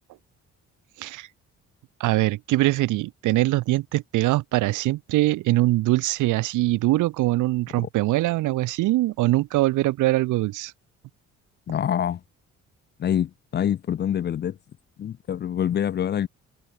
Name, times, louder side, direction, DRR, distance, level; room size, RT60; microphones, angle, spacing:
voice 1, 2.0-10.7, right 17 dB, 90° right, 1.1 m, -22 dB
voice 2, 11.7-12.2 13.0-14.6 15.0-16.3, left 9 dB, 35° left, 0.4 m, -25 dB
open air
cardioid pair, 90°, 30 cm